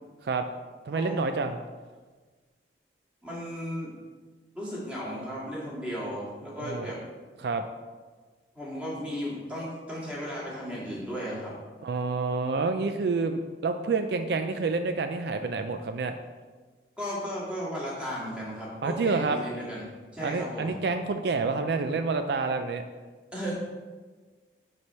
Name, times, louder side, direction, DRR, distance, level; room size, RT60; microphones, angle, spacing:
voice 1, 0.8-1.6 6.6-6.9 7.4-7.6 11.8-16.1 18.8-19.4 20.2-22.8, right 4 dB, 70° right, 7 dB, 0.4 m, -28 dB
voice 2, 3.2-3.9 4.5-7.0 8.5-11.5 17.0-19.8 20.1-20.8 23.3-23.5, equal, 5° right, -7 dB, 1.9 m, -35 dB
9.5 x 3.3 x 4.2 m, 1.4 s
head